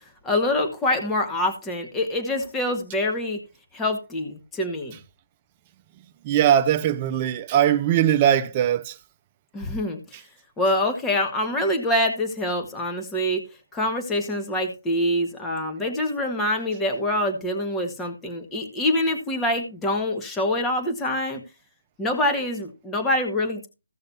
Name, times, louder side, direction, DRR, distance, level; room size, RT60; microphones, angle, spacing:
voice 1, 0.2-3.4 3.7-5.0 9.5-10.0 10.6-13.4 13.7-21.4 22.0-23.7, left 1 dB, 10° left, 1.8 m, -25 dB
voice 2, 6.2-8.9, right 10 dB, 25° right, 0.7 m, -20 dB
16.0 x 6.5 x 2.9 m
figure-of-eight pair, 155°, 0 cm